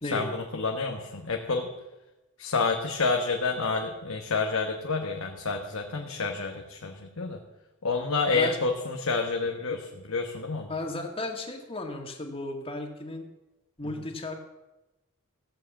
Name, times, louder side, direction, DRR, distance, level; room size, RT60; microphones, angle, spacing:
voice 1, 0.1-1.7 2.4-7.4 7.8-10.7, left 4 dB, 75° left, 2 dB, 1.2 m, -29 dB
voice 2, 10.7-13.3 13.8-14.4, left 2 dB, 25° left, 3 dB, 2.0 m, -34 dB
15.5 x 7.7 x 7.2 m, 1.0 s
head